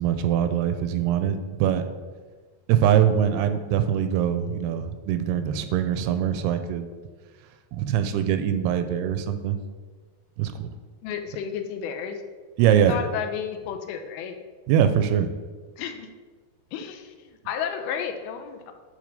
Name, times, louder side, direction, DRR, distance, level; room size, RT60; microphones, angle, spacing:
voice 1, 0.0-1.8 2.7-6.9 7.7-9.6 10.4-10.7 12.6-13.0 14.7-15.3, right 9 dB, 85° right, 9 dB, 2.4 m, -23 dB
voice 2, 11.0-12.2 12.6-14.4 15.8-16.1 16.7-17.1 17.5-18.7, left 8 dB, 85° left, 6 dB, 2.5 m, -32 dB
9.9 x 3.4 x 5.2 m, 1.4 s
omnidirectional pair, 4.4 m